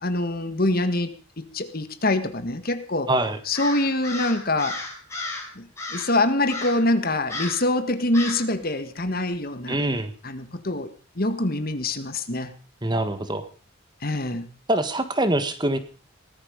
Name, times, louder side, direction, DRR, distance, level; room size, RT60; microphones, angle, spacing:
voice 1, 0.0-3.1 3.5-4.8 5.6-9.8 10.2-10.9 11.2-12.5 14.0-14.5, left 2 dB, 45° left, 9 dB, 1.8 m, -25 dB
voice 2, 3.1-3.4 9.7-10.1 12.8-13.4 14.7-15.8, right 1 dB, 20° right, 11 dB, 1.6 m, -24 dB
Crow, 3.5-5.5 5.8-6.2 6.5-6.9 7.3-7.7 8.1-8.5, left 2 dB, 15° left, 4.9 m, -33 dB
19.0 x 13.5 x 5.3 m, 0.39 s
head